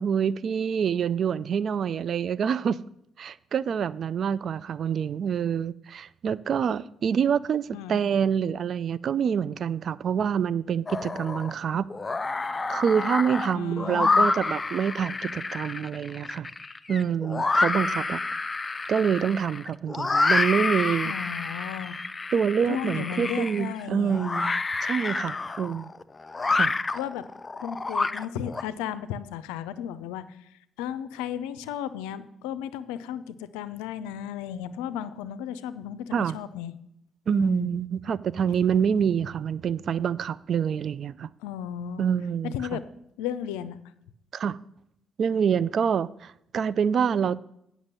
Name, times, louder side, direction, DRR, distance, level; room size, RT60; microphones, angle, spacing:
voice 1, 0.0-2.8 3.2-11.9 12.7-16.5 16.9-18.2 18.9-21.1 22.3-24.5 24.8-25.9 26.5-26.8 36.1-36.4 37.3-41.3 42.0-42.8 44.3-44.6 45.2-47.4, right 7 dB, 60° right, 0.3 m, -26 dB
sound 1, 10.9-11.5 11.9-28.6, left 3 dB, 30° left, 0.5 m, -28 dB
voice 2, 13.5-14.3 21.1-22.0 22.7-24.4 26.9-27.2 27.6-30.3 30.8-36.7 37.3-37.7 41.4-42.0 42.5-42.8 43.2-43.8, left 9 dB, 90° left, 0.4 m, -34 dB
8.8 x 6.1 x 6.7 m
supercardioid pair, 55°, 0 cm